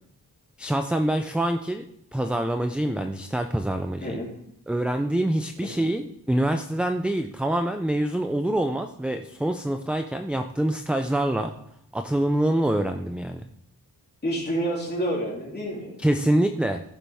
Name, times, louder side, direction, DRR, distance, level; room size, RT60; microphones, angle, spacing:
voice 1, 0.6-1.9 2.1-4.2 4.7-11.5 11.9-13.4 16.0-16.8, right 1 dB, 5° right, 7 dB, 0.4 m, -25 dB
voice 2, 14.2-16.0, right 1 dB, 25° left, -4 dB, 3.2 m, -28 dB
15.0 x 7.2 x 3.5 m, 0.74 s
wide cardioid pair, 160°, 38 cm